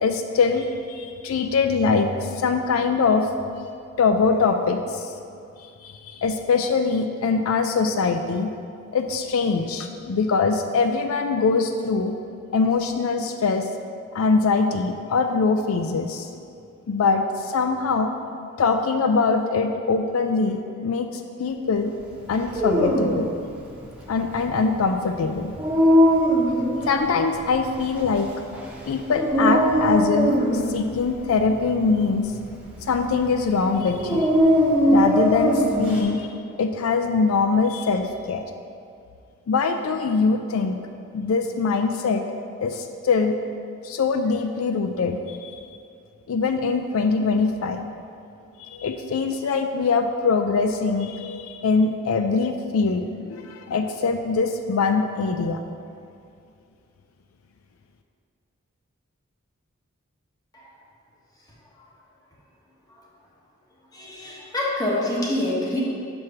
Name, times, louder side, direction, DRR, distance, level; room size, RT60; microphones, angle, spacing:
voice 1, 0.0-3.3 4.0-5.1 5.8-8.5 8.9-12.1 12.5-13.7 14.1-16.3 16.9-18.1 18.6-21.1 21.4-21.9 22.3-23.3 24.1-25.5 26.9-28.3 28.9-32.3 32.9-34.3 34.9-36.3 36.6-38.4 39.5-40.8 41.1-42.2 42.6-43.4 43.8-45.5 46.3-47.8 48.6-55.6, left 4 dB, 85° left, 6 dB, 0.4 m, -23 dB
Dog, 22.3-36.0, equal, 5° right, 0.9 m, -22 dB
voice 2, 63.9-65.8, left 1 dB, 20° left, -4 dB, 1.2 m, -26 dB
6.2 x 4.8 x 5.7 m, 2.4 s
head